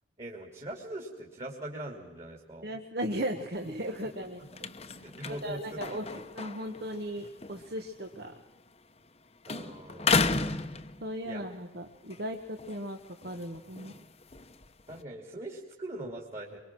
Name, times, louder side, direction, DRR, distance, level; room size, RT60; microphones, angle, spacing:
voice 1, 0.2-2.8 5.0-6.2 9.5-10.2 11.2-11.4 14.9-16.6, right 1 dB, 35° right, 0 dB, 2.9 m, -42 dB
voice 2, 2.6-4.4 5.3-8.3 11.0-14.0, equal, 55° right, 4 dB, 1.4 m, -37 dB
sound 1, 3.5-9.2 9.4-11.5 11.9-15.0, left 4 dB, 35° left, 1.0 m, -35 dB
23.5 x 23.5 x 6.2 m, 1.1 s
head